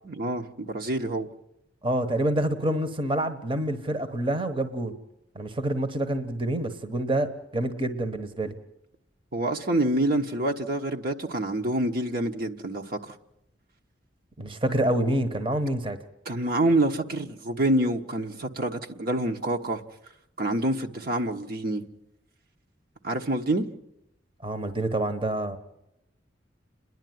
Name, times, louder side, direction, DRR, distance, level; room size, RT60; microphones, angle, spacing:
voice 1, 0.0-1.3 9.3-13.1 16.2-19.8 20.4-21.8 23.0-23.7, right 1 dB, 55° right, 1.2 m, -27 dB
voice 2, 1.8-4.9 5.3-8.5 14.4-16.0 24.4-25.6, right 1 dB, 30° right, 1.1 m, -27 dB
29.0 x 11.0 x 9.3 m
head